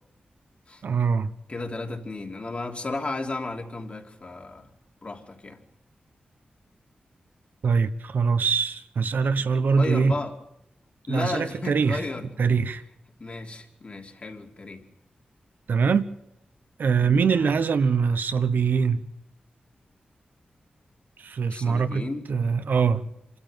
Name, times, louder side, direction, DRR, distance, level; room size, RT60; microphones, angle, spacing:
voice 1, 0.8-1.3 7.6-10.1 11.1-12.0 12.4-12.8 15.7-16.1 16.8-19.0 21.2-22.0 22.3-23.0, right 5 dB, 85° right, 1.1 m, -23 dB
voice 2, 1.5-4.7 5.0-5.6 9.7-10.3 11.1-12.3 13.2-14.8 17.3-17.6 21.5-22.2, left 3 dB, 40° left, 2.8 m, -33 dB
27.0 x 12.5 x 9.3 m
wide cardioid pair, 90°, 3 cm